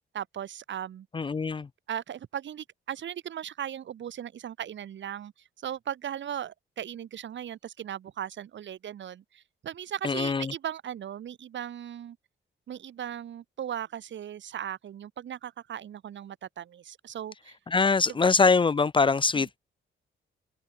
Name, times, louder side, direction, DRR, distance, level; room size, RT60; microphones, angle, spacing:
voice 1, 0.1-1.1 1.9-5.3 5.6-12.2 12.7-17.6 18.1-18.2 19.3-19.5, right 10 dB, 70° right, 5.3 m, -37 dB
voice 2, 1.1-1.7 10.0-10.5 17.7-19.6, left 4 dB, 25° left, 0.8 m, -23 dB
open air
wide cardioid pair, 160°, 20 cm